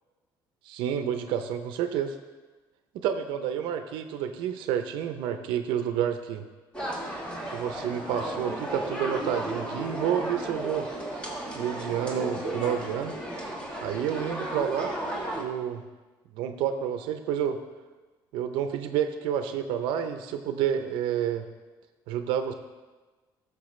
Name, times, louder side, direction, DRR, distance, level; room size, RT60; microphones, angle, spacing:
voice 1, 0.6-2.2 2.9-6.4 7.5-10.9 11.5-13.2 13.8-15.0 15.3-15.8 16.3-17.6 18.3-21.5 22.1-22.5, right 9 dB, 85° right, 8 dB, 0.6 m, -29 dB
sound 1, 6.7-15.4, right 1 dB, 15° left, 1.4 m, -34 dB
15.0 x 6.7 x 3.2 m, 1.3 s
cardioid pair, 155°, 8 cm